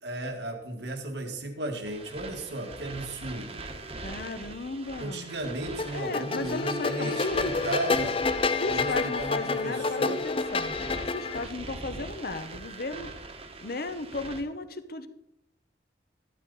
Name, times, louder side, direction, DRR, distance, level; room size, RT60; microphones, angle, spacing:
voice 1, 0.0-3.6 5.0-8.2 8.6-10.2, right 1 dB, 75° right, 4 dB, 1.9 m, -35 dB
sound 1, 1.8-14.4, right 3 dB, 35° right, 1.3 m, -42 dB
voice 2, 4.0-5.3 5.9-7.5 8.6-10.8 11.1-13.1 13.6-15.1, left 3 dB, 55° left, 10 dB, 0.9 m, -35 dB
sound 2, 5.8-11.4, left 4 dB, 30° left, 0.5 m, -29 dB
13.0 x 11.5 x 4.1 m, 0.86 s
head